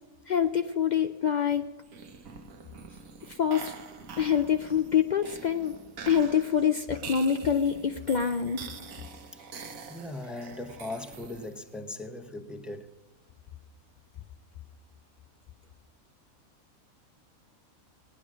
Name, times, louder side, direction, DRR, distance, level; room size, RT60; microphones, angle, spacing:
voice 1, 0.3-1.6 3.3-3.7 4.2-5.7 6.0-8.7, left 8 dB, 80° left, 0.4 m, -26 dB
sound 1, 1.8-11.7, right 5 dB, 70° right, 1.4 m, -45 dB
voice 2, 9.9-12.9, left 2 dB, ahead, 0.6 m, -39 dB
17.5 x 10.0 x 6.1 m
omnidirectional pair, 1.5 m